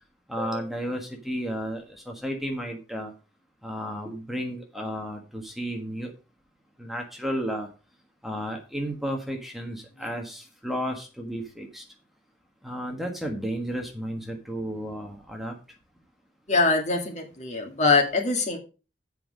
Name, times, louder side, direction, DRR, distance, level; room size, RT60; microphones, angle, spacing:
voice 1, 0.3-3.1 3.6-6.1 6.8-7.7 8.2-11.8 12.6-15.6, equal, ahead, 2 dB, 1.4 m, -33 dB
voice 2, 16.5-18.6, left 3 dB, 45° left, 3 dB, 2.2 m, -23 dB
7.9 x 5.7 x 6.3 m, 0.33 s
head